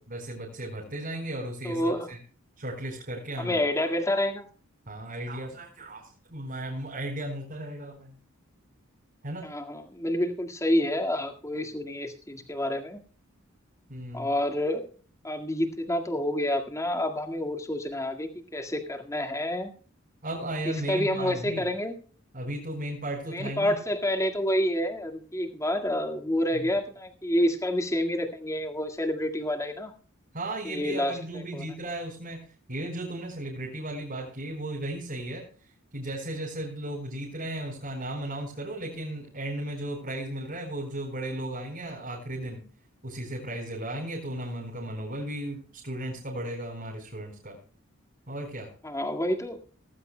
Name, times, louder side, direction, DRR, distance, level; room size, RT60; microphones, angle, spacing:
voice 1, 0.1-2.2 2.6-3.6 4.9-8.2 9.2-9.5 13.9-14.3 20.2-21.7 22.3-23.8 26.5-26.7 30.3-42.6 43.0-47.6 48.3-48.7, right 1 dB, 45° right, -2 dB, 4.4 m, -35 dB
voice 2, 1.6-2.1 3.4-4.5 9.4-13.0 14.1-14.9 15.2-19.7 20.9-21.9 23.3-29.9 30.6-31.6 48.8-49.6, left 1 dB, 15° left, 4 dB, 1.9 m, -28 dB
18.5 x 15.5 x 2.2 m, 0.41 s
head